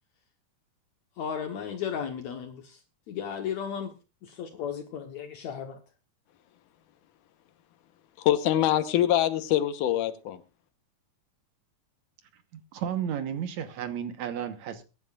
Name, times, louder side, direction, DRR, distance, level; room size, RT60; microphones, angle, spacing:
voice 1, 1.2-2.8 3.1-3.9 4.2-5.8, left 8 dB, 65° left, 2.3 m, -35 dB
voice 2, 8.2-10.4, left 12 dB, 85° left, 2.6 m, -24 dB
voice 3, 12.5-14.8, right 9 dB, 70° right, 2.3 m, -33 dB
22.5 x 11.0 x 2.4 m
omnidirectional pair, 3.6 m